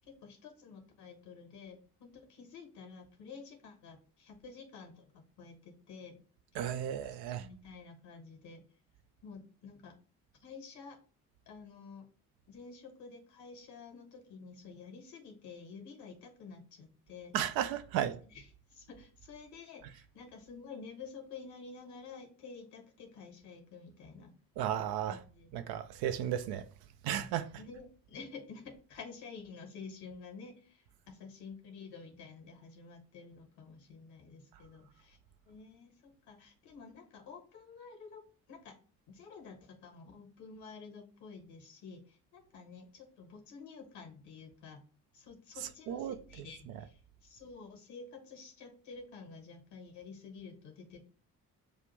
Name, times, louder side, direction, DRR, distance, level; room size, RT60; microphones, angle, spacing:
voice 1, 0.1-6.2 6.5-6.8 7.4-8.6 9.2-9.9 10.4-11.0 11.5-12.1 12.5-17.3 18.2-24.3 25.1-25.6 27.6-35.2 35.4-38.8 39.1-44.8 45.1-51.0, left 5 dB, 60° left, 1.2 m, -50 dB
voice 2, 6.6-7.5 17.3-18.2 24.6-25.2 25.5-26.6 27.0-27.5 45.9-46.2, right 10 dB, 55° right, 0.5 m, -34 dB
6.5 x 2.5 x 3.0 m
figure-of-eight pair, 40°, 46 cm